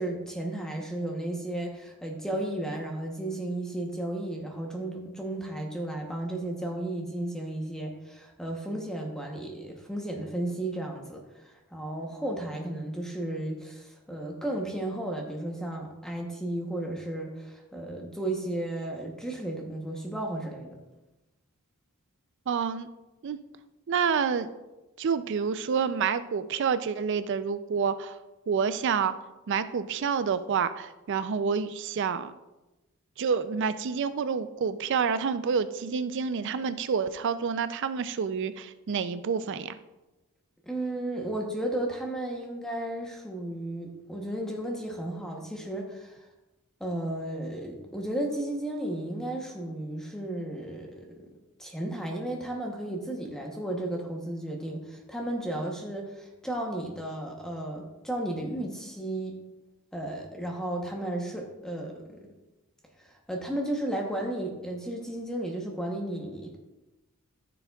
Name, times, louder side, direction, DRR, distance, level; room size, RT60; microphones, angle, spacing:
voice 1, 0.0-20.7 40.7-46.3 46.8-51.1 51.6-59.4 59.9-62.0 63.0-66.6, right 1 dB, 5° left, 0 dB, 0.9 m, -34 dB
voice 2, 22.5-22.9 23.2-23.4 23.9-24.5 25.0-28.2 28.5-29.1 29.5-32.3 33.2-39.8, right 6 dB, 55° right, 13 dB, 0.4 m, -28 dB
13.5 x 6.9 x 2.3 m, 1.0 s
head